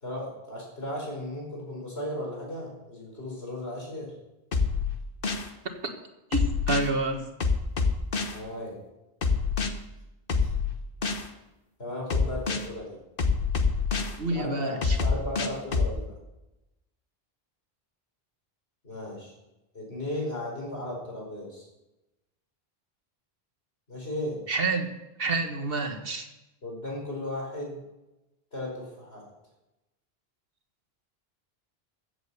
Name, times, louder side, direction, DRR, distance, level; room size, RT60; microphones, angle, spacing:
voice 1, 0.0-4.1 8.3-8.8 10.3-10.5 11.8-13.0 14.3-16.1 18.8-19.3 19.7-21.7 23.9-24.4 26.6-27.8 28.5-29.2, left 1 dB, 85° left, -1 dB, 5.0 m, -36 dB
sound 1, 4.5-5.5 6.3-6.9 7.4-8.4 9.2-9.7 10.3-11.3 12.1-12.7 13.2-14.2 14.8-15.9, left 4 dB, 60° left, 1.3 m, -26 dB
voice 2, 6.3-7.3 14.2-15.0 24.5-24.9 25.2-26.3, right 3 dB, 65° right, 6 dB, 1.7 m, -28 dB
15.0 x 8.1 x 6.9 m, 0.98 s
omnidirectional pair, 1.0 m